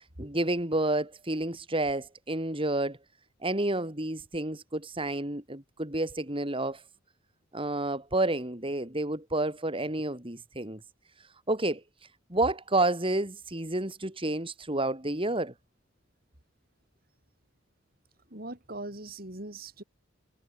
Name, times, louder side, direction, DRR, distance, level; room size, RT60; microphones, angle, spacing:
voice 1, 0.0-3.0 3.4-6.8 7.5-10.8 11.5-11.8 12.3-15.5, right 2 dB, 30° right, 4.2 m, -30 dB
voice 2, 18.3-19.8, right 2 dB, 50° right, 6.2 m, -40 dB
head